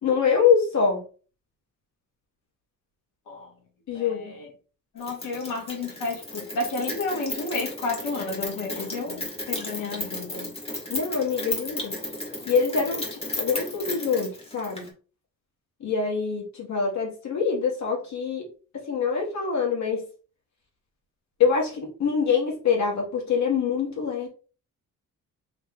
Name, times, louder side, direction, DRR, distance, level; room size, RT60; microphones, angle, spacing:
voice 1, 0.0-1.0 3.9-4.4 10.9-12.0 12.4-14.9 15.8-18.4 18.7-20.0 21.4-24.3, left 6 dB, 60° left, -2 dB, 2.1 m, -25 dB
voice 2, 3.9-4.5 4.9-10.5, left 3 dB, 80° left, -1 dB, 1.9 m, -31 dB
Rain, 5.0-14.9, left 1 dB, 20° left, 1.7 m, -34 dB
3.9 x 3.2 x 3.9 m, 0.37 s
cardioid pair, 125°, 32 cm